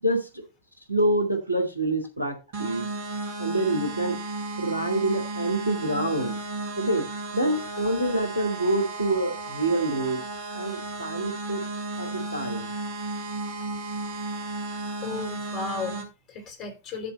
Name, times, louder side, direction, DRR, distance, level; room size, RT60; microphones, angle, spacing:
voice 1, 0.9-2.9 3.4-4.2 4.6-6.4 6.8-7.1 7.3-10.2 10.5-11.6 12.0-12.7, right 1 dB, 90° right, 2.0 m, -26 dB
sound 1, 2.5-16.0, right 2 dB, 55° right, 3.1 m, -34 dB
voice 2, 15.0-17.1, left 4 dB, 35° left, 3.4 m, -35 dB
10.5 x 4.1 x 5.4 m
figure-of-eight pair, 90°, 0 cm